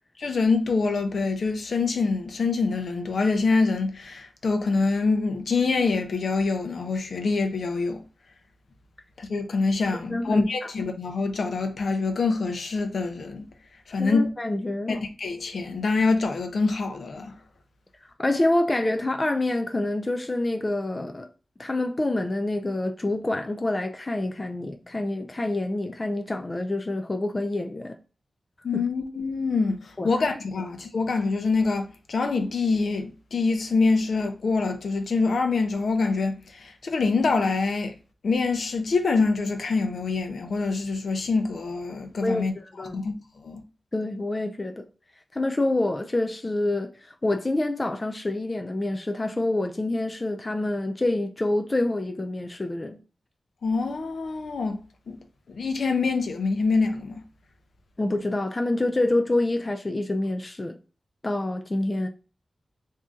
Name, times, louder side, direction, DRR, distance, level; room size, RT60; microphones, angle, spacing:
voice 1, 0.2-8.0 9.2-13.5 13.9-14.3 14.9-17.3 28.6-29.8 30.0-37.9 38.2-42.5 42.9-43.1 43.4-43.6 53.6-54.8 55.1-55.2 55.5-57.2, left 4 dB, 70° left, 0.7 m, -25 dB
voice 2, 10.1-10.5 14.0-15.0 18.2-21.3 21.6-28.0 28.7-28.8 30.0-30.1 42.2-43.0 43.9-44.8 45.3-46.9 47.2-53.0 58.0-60.8 61.2-62.1, left 2 dB, 25° left, 0.3 m, -27 dB
3.7 x 2.7 x 3.6 m
wide cardioid pair, 140°, 0 cm